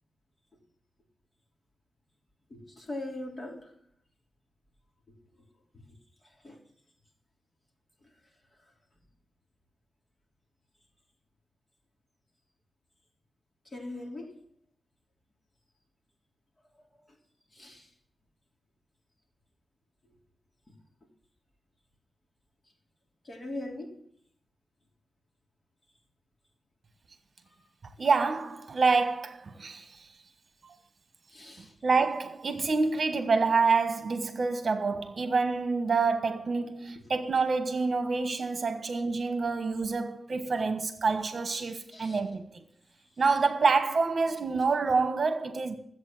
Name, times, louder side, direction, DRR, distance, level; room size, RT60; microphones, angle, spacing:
voice 1, 2.5-3.6 6.4-6.6 13.7-14.3 17.6-17.8 23.3-23.9 31.3-31.7 41.9-42.2, left 2 dB, 30° left, 3.4 m, -39 dB
voice 2, 28.0-29.8 31.8-42.4 43.2-45.7, right 4 dB, 50° right, 1.3 m, -27 dB
13.5 x 8.2 x 7.7 m
wide cardioid pair, 105°, 0 cm